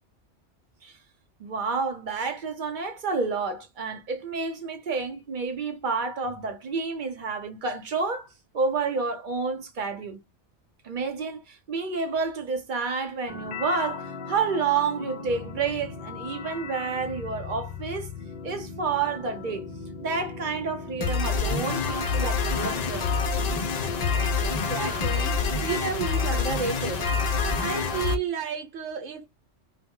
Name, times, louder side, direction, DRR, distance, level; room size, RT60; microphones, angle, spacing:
voice 1, 1.4-8.3 8.5-10.2 10.8-18.1 18.4-19.7 20.0-23.1, right 4 dB, 50° right, 0.7 m, -29 dB
sound 1, 13.3-28.2, left 5 dB, 70° left, 0.3 m, -29 dB
voice 2, 24.4-27.1 27.6-29.3, right 7 dB, 85° right, 0.9 m, -32 dB
2.1 x 2.0 x 3.5 m
omnidirectional pair, 1.2 m